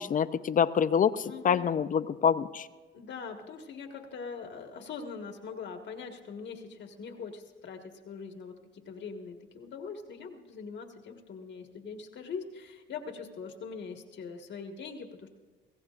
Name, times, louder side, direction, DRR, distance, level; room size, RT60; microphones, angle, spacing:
voice 1, 0.0-2.7, left 7 dB, 40° left, 14 dB, 0.5 m, -26 dB
voice 2, 1.2-1.8 2.9-15.3, left 5 dB, 65° left, 3 dB, 1.7 m, -42 dB
24.0 x 16.0 x 2.5 m, 1.3 s
cardioid pair, 90°, 20 cm